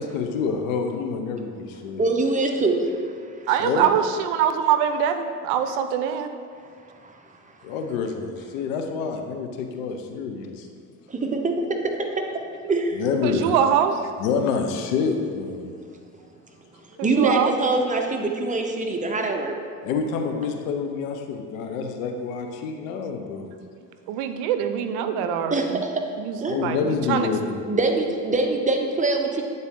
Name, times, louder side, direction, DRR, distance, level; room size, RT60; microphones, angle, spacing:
voice 1, 0.0-2.0 3.6-3.9 7.6-10.7 12.9-13.5 14.2-15.8 19.8-23.5 26.5-27.6, left 5 dB, 85° left, 5 dB, 0.7 m, -27 dB
voice 2, 2.0-3.0 6.9-7.1 11.1-12.2 12.7-13.0 17.0-19.5 25.5-26.0 26.4-26.6 27.7-29.4, right 3 dB, 20° right, 3 dB, 0.8 m, -24 dB
voice 3, 3.5-6.3 13.2-14.0 17.0-17.5 24.1-25.8 26.2-27.3, right 9 dB, 70° right, 8 dB, 0.6 m, -23 dB
8.4 x 4.0 x 3.7 m, 2.2 s
hypercardioid pair, 70°, 39 cm